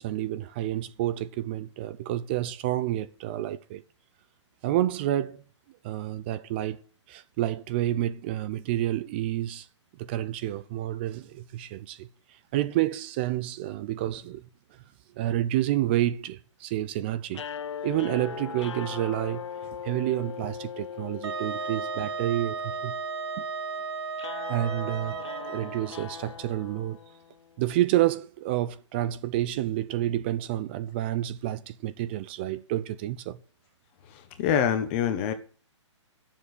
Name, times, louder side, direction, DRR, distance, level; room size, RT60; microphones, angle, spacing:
voice 1, 0.0-3.8 4.6-5.4 5.8-6.8 7.1-9.7 10.0-12.1 12.5-14.5 15.2-17.4 17.8-19.5 19.8-22.9 24.5-25.2 25.5-27.0 27.6-33.4, right 13 dB, 20° right, 0.5 m, -29 dB
sound 1, 17.3-27.5, left 7 dB, 65° left, 0.8 m, -40 dB
Wind instrument woodwind instrument, 21.2-25.9, right 5 dB, 55° right, 1.5 m, -34 dB
voice 2, 34.1-35.3, left 8 dB, 25° left, 1.2 m, -26 dB
11.5 x 7.4 x 8.2 m
hypercardioid pair, 165°, 16 cm